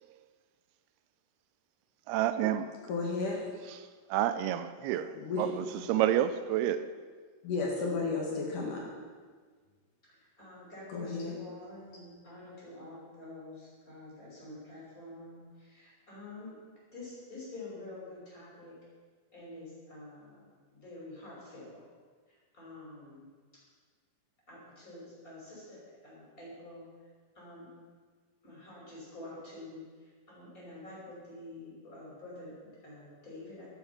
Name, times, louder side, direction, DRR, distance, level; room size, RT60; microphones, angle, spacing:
voice 1, 2.1-2.7 3.7-6.9, right 11 dB, 85° right, 2.6 m, -30 dB
voice 2, 2.9-3.4 5.2-5.7 7.4-8.8 10.9-11.4, left 3 dB, 60° left, 3.3 m, -33 dB
voice 3, 10.4-16.5 16.9-18.7 19.3-20.5 20.7-21.8 22.5-23.2 24.5-26.9 27.4-27.7 28.4-29.8 30.3-33.7, left 2 dB, 20° left, 6.3 m, -47 dB
13.5 x 13.0 x 6.0 m
omnidirectional pair, 4.5 m